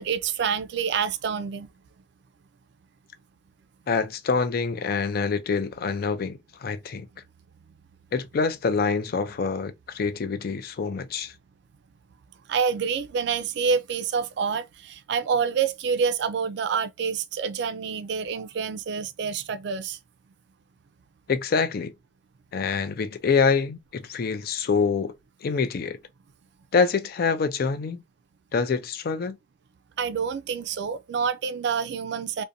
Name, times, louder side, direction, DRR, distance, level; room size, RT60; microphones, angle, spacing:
voice 1, 0.0-1.7 12.5-20.0 30.0-32.4, right 6 dB, 70° right, 0.3 m, -27 dB
voice 2, 3.9-7.1 8.1-11.3 21.3-21.9 22.5-25.1 25.4-26.0 26.7-28.0 28.5-29.4, left 5 dB, 55° left, 0.4 m, -26 dB
2.5 x 2.1 x 2.6 m
head